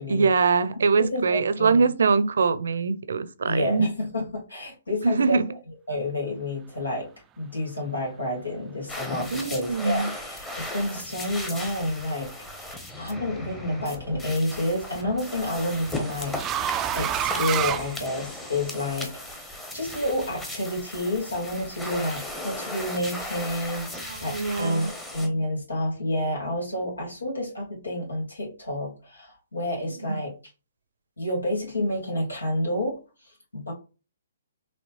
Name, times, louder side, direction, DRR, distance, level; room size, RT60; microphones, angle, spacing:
voice 1, 0.1-3.9 5.0-5.4 9.3-10.1 24.1-24.9 30.0-30.1, right 4 dB, 70° right, 0.5 m, -23 dB
voice 2, 1.0-1.9 3.4-5.4 5.9-7.1 7.4-12.7 13.0-19.1 19.7-30.3 31.2-33.0 33.5-33.7, left 1 dB, 85° left, 2.6 m, -29 dB
sound 1, 8.9-25.3, left 1 dB, 10° left, 1.1 m, -37 dB
sound 2, 12.7-13.2 14.6-18.6, right 10 dB, 20° right, 0.3 m, -30 dB
5.4 x 3.1 x 3.2 m
figure-of-eight pair, 135°, 0 cm